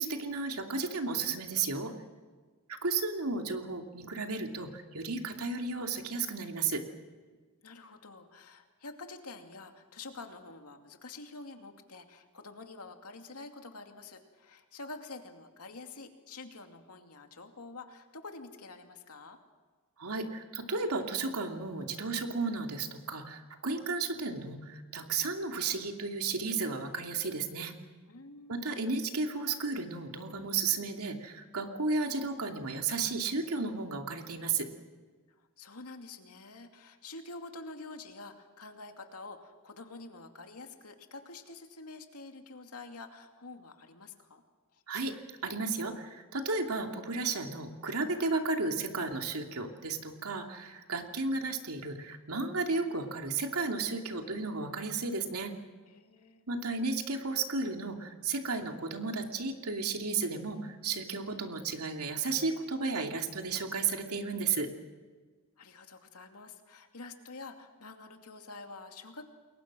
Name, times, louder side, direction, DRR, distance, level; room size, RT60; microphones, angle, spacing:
voice 1, 0.0-1.9 2.7-6.8 20.0-27.7 28.5-34.7 44.9-45.1 45.4-55.5 56.5-64.7, right 4 dB, 80° right, 4 dB, 2.7 m, -33 dB
voice 2, 7.6-19.4 28.1-28.6 35.4-44.4 44.7-44.8 55.8-56.4 65.6-69.3, left 3 dB, 85° left, 5 dB, 2.5 m, -47 dB
29.0 x 21.5 x 6.2 m, 1.4 s
head